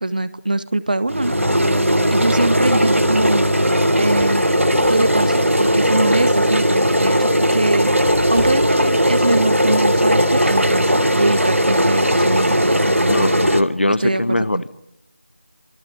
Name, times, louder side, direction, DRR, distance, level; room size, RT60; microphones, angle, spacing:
voice 1, 0.0-1.4 1.7-3.4 3.9-4.5 4.9-7.9 8.3-13.5 14.0-14.7, right 2 dB, 40° right, 1.2 m, -23 dB
sound 1, 1.1-13.6, equal, 90° right, 2.5 m, -17 dB
sound 2, 4.2-6.1 6.9-7.0 7.2-7.3 7.8-9.0, right 2 dB, 5° right, 2.1 m, -36 dB
voice 2, 13.1-14.7, left 1 dB, 60° left, 1.3 m, -20 dB
28.5 x 26.0 x 7.9 m
figure-of-eight pair, 170°, 7 cm